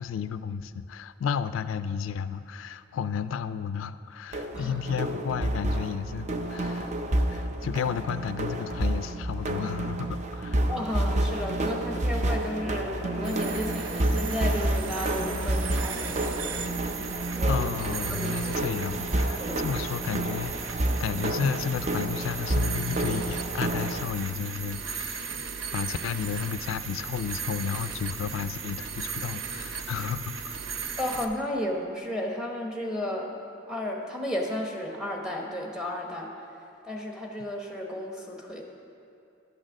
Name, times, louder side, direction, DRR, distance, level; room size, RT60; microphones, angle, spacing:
voice 1, 0.0-7.0 7.3-10.6 17.5-25.3 25.7-30.7, left 7 dB, 85° left, 12 dB, 0.3 m, -32 dB
sound 1, 4.3-24.0, right 1 dB, 35° right, 0.5 m, -29 dB
voice 2, 10.7-16.7 17.4-17.6 18.0-18.6 19.4-19.7 31.0-33.3 33.7-36.3 36.8-38.6, left 1 dB, 5° right, 0 dB, 1.0 m, -33 dB
sound 2, 12.5-17.7, equal, 65° right, 2.8 m, -43 dB
sound 3, 13.2-31.2, right 6 dB, 80° right, 0.6 m, -36 dB
10.5 x 6.3 x 6.2 m, 2.6 s
head